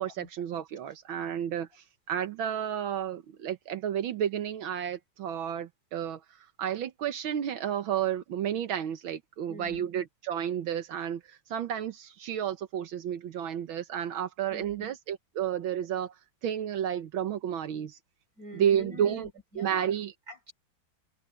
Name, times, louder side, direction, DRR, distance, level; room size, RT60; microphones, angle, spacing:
voice 1, 0.0-6.2 6.6-16.1 16.4-18.0 18.5-19.3 19.6-20.1, right 9 dB, 80° right, 1.8 m, -31 dB
voice 2, 9.5-9.9 14.5-14.9 18.4-19.9 20.3-20.5, equal, 45° right, 4.5 m, -45 dB
omnidirectional pair, 2.2 m